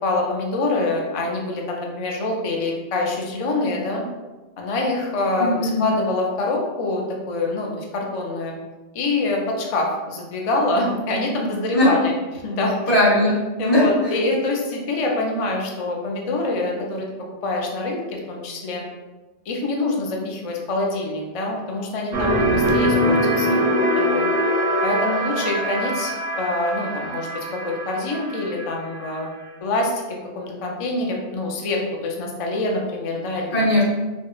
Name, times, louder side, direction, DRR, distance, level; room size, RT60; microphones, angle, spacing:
voice 1, 0.0-4.0 4.6-8.5 8.9-12.1 12.4-13.0 13.6-17.1 17.4-18.8 19.5-23.7 23.9-24.2 24.8-29.3 29.6-33.7, left 2 dB, 50° left, 0 dB, 0.4 m, -25 dB
voice 2, 5.4-5.9 11.7-11.9 12.9-13.8 33.5-33.8, left 1 dB, 80° left, -9 dB, 1.6 m, -18 dB
sound 1, 22.1-29.1, equal, 55° right, 0.5 m, -22 dB
4.3 x 2.1 x 2.3 m, 1.2 s
omnidirectional pair, 1.1 m